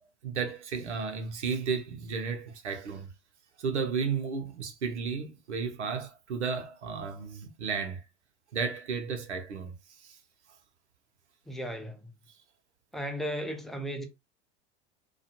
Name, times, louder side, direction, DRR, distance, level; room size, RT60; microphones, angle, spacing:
voice 1, 0.2-3.1 3.6-8.0 8.5-9.7 10.0-10.2, right 5 dB, 75° right, 0.8 m, -33 dB
voice 2, 11.5-12.1 12.9-14.1, equal, ahead, 0.3 m, -35 dB
2.4 x 2.3 x 2.8 m
figure-of-eight pair, 75°, 35 cm